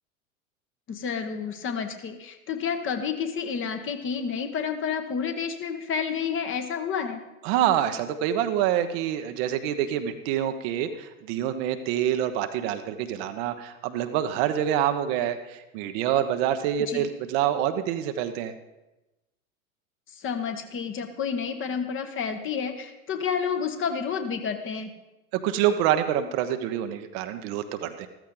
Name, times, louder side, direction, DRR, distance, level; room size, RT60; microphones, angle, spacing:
voice 1, 0.9-7.2 16.8-17.1 20.1-24.9, left 6 dB, 30° left, 7 dB, 1.4 m, -30 dB
voice 2, 7.4-18.5 25.3-28.1, right 10 dB, 45° right, 8 dB, 1.0 m, -26 dB
14.0 x 14.0 x 3.9 m, 1.0 s
figure-of-eight pair, 80°, 42 cm